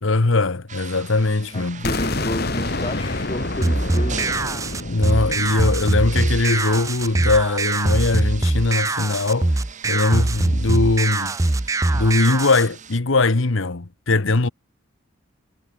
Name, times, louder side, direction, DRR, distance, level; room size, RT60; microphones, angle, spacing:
voice 1, 0.0-1.9 4.9-9.5 9.8-11.3 11.9-14.5, left 3 dB, 70° left, 1.1 m, -20 dB
sound 1, 0.7-13.0, right 7 dB, 35° right, 2.8 m, -41 dB
voice 2, 1.5-4.4, left 1 dB, 25° left, 3.4 m, -31 dB
sound 2, 1.8-7.6, left 2 dB, 50° left, 2.2 m, -29 dB
sound 3, 3.6-12.7, right 2 dB, 15° right, 0.5 m, -22 dB
head